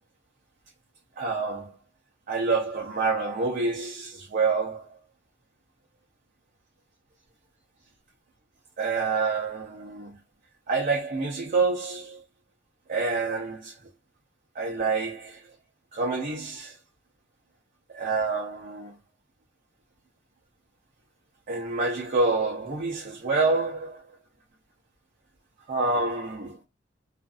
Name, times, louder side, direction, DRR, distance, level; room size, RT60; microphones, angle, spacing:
voice 1, 1.2-1.7 2.3-5.0 8.8-10.1 10.7-12.2 12.9-13.7 14.6-15.4 15.9-16.7 17.9-18.9 21.5-24.0 25.7-26.6, right 3 dB, 45° right, 0.5 m, -27 dB
2.5 x 2.3 x 2.3 m
head